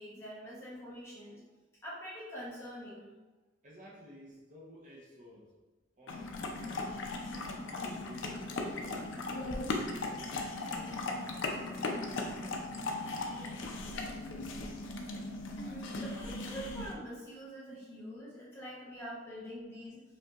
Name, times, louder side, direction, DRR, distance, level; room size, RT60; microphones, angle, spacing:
voice 1, 0.0-1.4 1.8-3.1 15.5-20.0, equal, 15° left, -7 dB, 0.8 m, -45 dB
voice 2, 3.6-5.5 6.0-7.2 7.6-10.1 10.6-13.7, equal, 40° right, -5 dB, 0.8 m, -54 dB
sound 1, 6.1-16.9, left 2 dB, 85° left, 0.5 m, -38 dB
5.3 x 2.6 x 2.4 m, 1.2 s
head